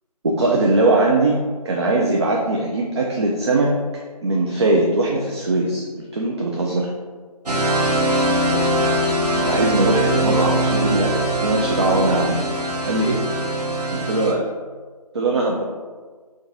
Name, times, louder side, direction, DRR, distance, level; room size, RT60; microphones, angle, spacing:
voice 1, 0.2-3.7 4.2-6.9 8.4-8.7 9.2-12.5 12.9-13.2 13.6-13.7 13.9-14.5 15.1-15.6, right 2 dB, 45° right, -1 dB, 0.4 m, -21 dB
sound 1, 7.5-14.3, right 1 dB, 75° right, 0.9 m, -21 dB
3.4 x 2.5 x 3.8 m, 1.5 s
figure-of-eight pair, 160°, 20 cm